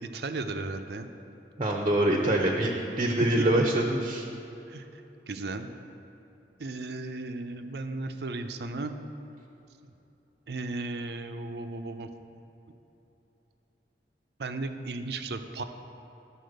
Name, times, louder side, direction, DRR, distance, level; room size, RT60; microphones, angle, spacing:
voice 1, 0.0-1.1 3.4-3.5 4.7-4.8 5.3-5.7 6.6-8.9 10.5-12.1 14.4-15.6, right 3 dB, 65° right, 8 dB, 0.6 m, -35 dB
voice 2, 1.6-2.7 3.0-4.2, right 1 dB, 30° right, 1 dB, 0.7 m, -24 dB
12.0 x 4.2 x 6.5 m, 3.0 s
head